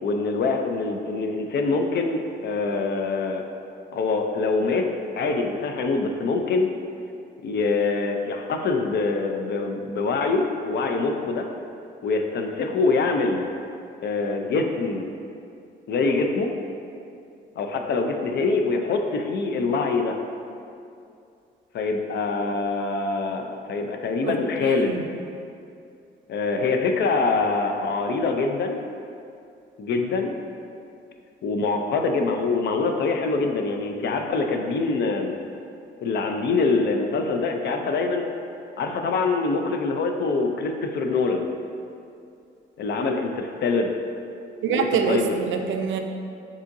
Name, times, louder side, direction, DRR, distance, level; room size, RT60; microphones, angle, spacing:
voice 1, 0.0-3.4 3.9-4.9 5.2-6.7 7.4-11.5 12.0-13.5 14.0-15.1 15.9-16.5 17.6-20.2 21.7-25.0 26.3-28.8 29.8-30.3 31.4-35.4 36.0-38.3 38.8-41.5 42.8-43.9 44.7-45.3, left 3 dB, 60° left, 4 dB, 0.5 m, -24 dB
voice 2, 24.6-25.1 44.6-46.0, right 6 dB, 75° right, 5 dB, 0.4 m, -25 dB
7.1 x 2.8 x 2.6 m, 2.5 s
cardioid pair, 90°, 20 cm